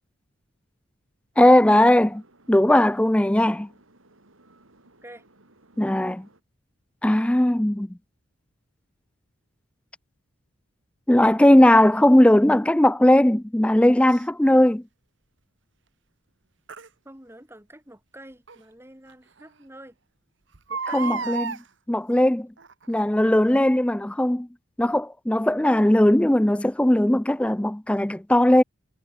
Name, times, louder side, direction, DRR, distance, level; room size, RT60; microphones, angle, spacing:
sound 1, 1.3-6.4, right 2 dB, 80° right, 4.6 m, -58 dB
voice 1, 1.4-2.2 2.5-3.7 5.8-6.3 7.0-7.9 11.1-14.8 20.9-21.5 21.9-22.5 22.9-24.5 24.8-28.6, left 1 dB, 5° left, 0.4 m, -18 dB
Crying sobbing, 14.1-14.2 16.7-16.9 18.5-18.6 19.1-19.2 19.4-19.5 20.5-21.6 22.6-22.9 23.5-23.6, right 5 dB, 65° right, 1.2 m, -31 dB
voice 2, 17.0-20.0 20.7-21.4, right 1 dB, 10° right, 2.9 m, -46 dB
head